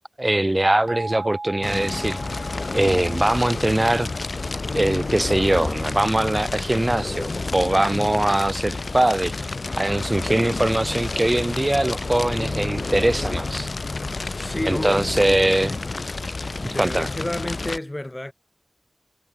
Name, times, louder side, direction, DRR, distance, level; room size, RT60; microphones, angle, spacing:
voice 1, 0.2-2.2 2.7-4.1 4.7-9.3 9.8-13.7 14.6-15.8 16.8-17.1, right 1 dB, 30° right, 0.7 m, -21 dB
sound 1, 0.9-5.6, right 3 dB, 60° right, 0.9 m, -39 dB
Fire, 1.6-17.8, left 3 dB, 70° left, 0.4 m, -29 dB
voice 2, 14.3-15.1 16.6-18.3, left 1 dB, 25° left, 2.5 m, -30 dB
wide cardioid pair, 65°, 0 cm